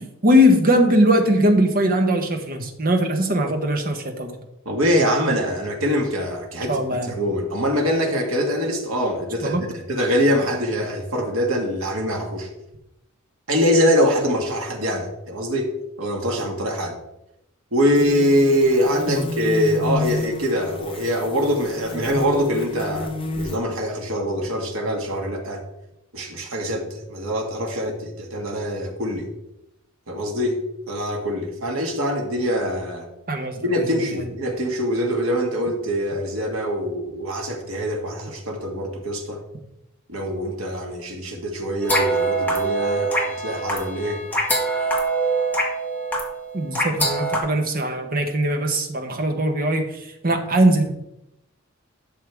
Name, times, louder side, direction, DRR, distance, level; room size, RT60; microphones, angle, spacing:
voice 1, 0.2-4.3 6.7-7.1 9.4-9.6 19.1-19.2 33.3-33.6 46.5-49.9 50.2-50.9, equal, 45° right, 5 dB, 1.2 m, -20 dB
voice 2, 4.7-12.5 13.5-17.0 17.7-25.6 26.1-29.3 30.1-30.6 30.9-33.1 33.6-39.4 40.1-44.2, equal, 80° right, 1 dB, 1.8 m, -23 dB
sound 1, 17.9-23.6, left 2 dB, 25° left, 0.9 m, -31 dB
sound 2, 41.8-47.4, right 2 dB, 10° left, 1.8 m, -24 dB
11.5 x 6.7 x 3.5 m, 0.87 s
head